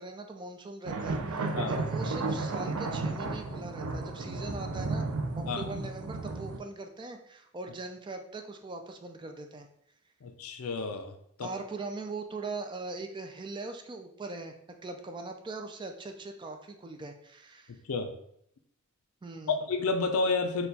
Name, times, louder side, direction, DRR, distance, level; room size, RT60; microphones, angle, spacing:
voice 1, 0.0-5.1 5.4-9.7 11.4-14.5 14.8-17.8 19.2-19.6, right 3 dB, 20° right, 5 dB, 0.3 m, -41 dB
sound 1, 0.9-6.6, right 3 dB, 75° right, 0.5 m, -33 dB
voice 2, 10.2-11.1 11.4-11.5 17.7-18.1 19.5-20.7, left 4 dB, 70° left, 7 dB, 0.5 m, -30 dB
4.3 x 2.3 x 4.0 m, 0.71 s
head